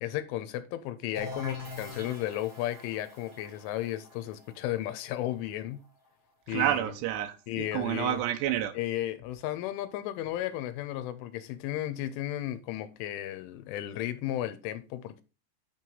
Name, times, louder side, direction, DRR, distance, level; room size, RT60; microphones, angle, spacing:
voice 1, 0.0-5.8 6.5-7.0 7.5-8.2 8.8-15.2, left 13 dB, 80° left, 3.1 m, -34 dB
sound 1, 1.1-6.7, left 2 dB, 15° right, 2.3 m, -44 dB
voice 2, 6.5-8.7, right 12 dB, 85° right, 2.4 m, -29 dB
9.3 x 4.7 x 5.5 m
omnidirectional pair, 5.9 m